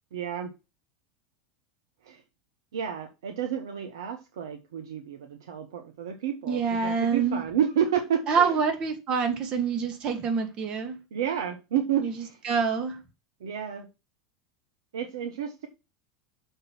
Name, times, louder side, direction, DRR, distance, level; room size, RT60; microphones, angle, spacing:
voice 1, 0.1-0.5 2.0-2.2 2.7-8.6 11.1-12.4 13.4-13.9 14.9-15.7, right 9 dB, 70° right, 1.0 m, -30 dB
voice 2, 6.4-7.4 8.3-11.0 12.0-13.0, right 5 dB, 40° right, 1.9 m, -26 dB
6.5 x 4.6 x 6.0 m
figure-of-eight pair, 80°, 2 cm